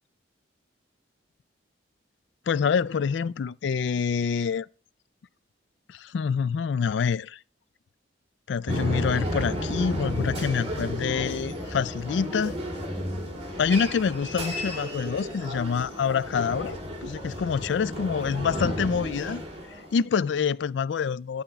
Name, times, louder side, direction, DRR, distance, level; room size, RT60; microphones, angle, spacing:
voice 1, 2.5-4.7 5.9-7.4 8.5-12.6 13.6-19.4 19.9-21.4, left 6 dB, 70° left, 0.3 m, -26 dB
sound 1, 8.7-19.9, equal, 35° right, 2.5 m, -32 dB
11.5 x 4.3 x 6.9 m
head